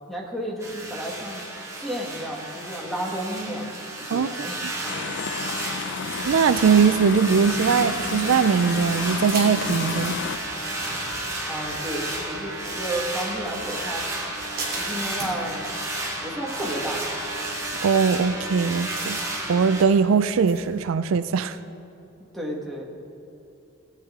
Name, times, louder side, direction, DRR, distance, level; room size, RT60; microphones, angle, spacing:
voice 1, 0.1-1.5 1.8-5.1 11.5-14.0 14.8-15.6 16.2-17.2 22.3-22.8, right 1 dB, ahead, -2 dB, 1.6 m, -32 dB
sound 1, 0.6-19.8, right 1 dB, 15° right, 1.8 m, -32 dB
voice 2, 4.1-4.7 6.2-10.2 17.8-19.2 19.5-21.6, right 6 dB, 70° right, 13 dB, 0.4 m, -21 dB
sound 2, 4.9-10.4, left 5 dB, 60° left, 0.4 m, -32 dB
sound 3, 6.1-20.8, right 2 dB, 45° right, 2.8 m, -42 dB
18.0 x 8.9 x 3.6 m, 2.9 s
head